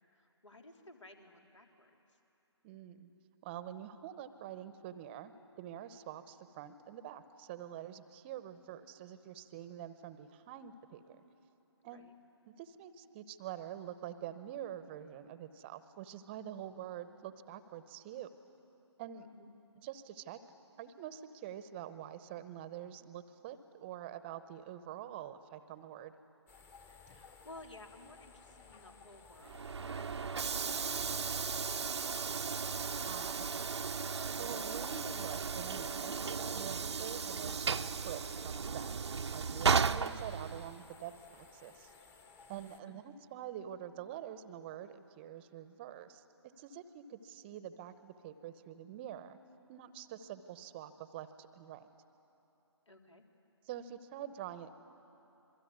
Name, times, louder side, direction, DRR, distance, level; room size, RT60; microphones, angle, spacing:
voice 1, 0.0-2.2 11.9-12.1 19.2-19.5 27.1-32.5 42.9-43.2 52.9-53.3, left 2 dB, 85° left, 3 dB, 3.4 m, -57 dB
voice 2, 2.6-3.1 3.4-11.2 11.8-12.1 12.5-18.3 19.0-19.3 19.8-20.4 20.8-26.1 33.1-33.7 34.4-36.2 36.5-38.9 39.3-41.9 42.5-46.2 46.6-49.4 49.7-51.9 53.7-54.7, right 10 dB, 20° right, 12 dB, 0.8 m, -46 dB
sound 1, 26.5-42.8, left 4 dB, 15° left, 1.0 m, -58 dB
Train / Sliding door, 29.4-40.9, right 5 dB, 70° right, 0.7 m, -35 dB
27.0 x 23.0 x 9.5 m, 3.0 s
figure-of-eight pair, 145°, 15 cm